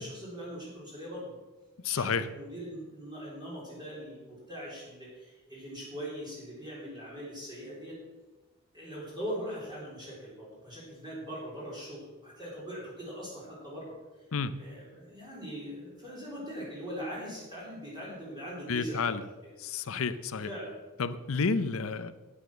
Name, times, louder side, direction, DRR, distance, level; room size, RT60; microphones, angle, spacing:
voice 1, 0.0-1.3 1.8-8.0 8.7-14.0 14.6-19.5 20.4-20.7, equal, 20° right, -7 dB, 4.0 m, -41 dB
voice 2, 1.8-2.3 14.3-14.6 18.7-19.2 19.6-20.5 21.0-22.1, left 5 dB, 65° left, 13 dB, 0.7 m, -30 dB
9.7 x 9.4 x 6.3 m, 1.2 s
head